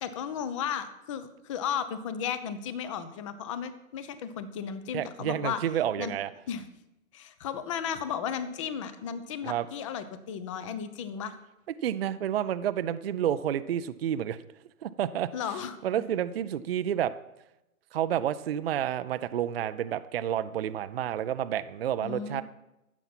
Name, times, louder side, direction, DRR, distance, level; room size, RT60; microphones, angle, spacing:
voice 1, 0.0-5.6 6.0-6.1 6.5-6.6 7.1-11.4 15.3-16.0 22.0-22.4, left 8 dB, 25° left, 12 dB, 0.7 m, -34 dB
voice 2, 4.9-6.3 9.4-9.7 11.8-14.4 14.8-15.3 15.8-17.1 17.9-22.4, right 10 dB, 45° right, 12 dB, 0.5 m, -30 dB
15.0 x 7.1 x 5.9 m, 0.93 s
hypercardioid pair, 150°, 42 cm